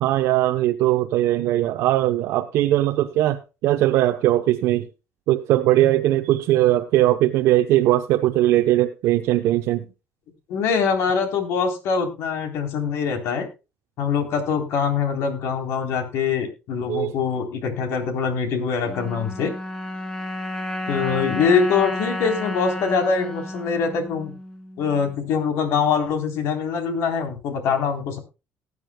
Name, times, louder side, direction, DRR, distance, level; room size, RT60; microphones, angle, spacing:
voice 1, 0.0-4.9 5.3-9.8 16.9-17.1, right 14 dB, 70° right, 0.8 m, -20 dB
voice 2, 10.5-13.5 14.0-19.5 20.9-24.3 24.8-28.2, left 6 dB, 70° left, 3.7 m, -23 dB
sound 1, 18.8-25.2, left 1 dB, 10° left, 2.6 m, -31 dB
19.0 x 9.7 x 2.3 m
cardioid pair, 140°, 5 cm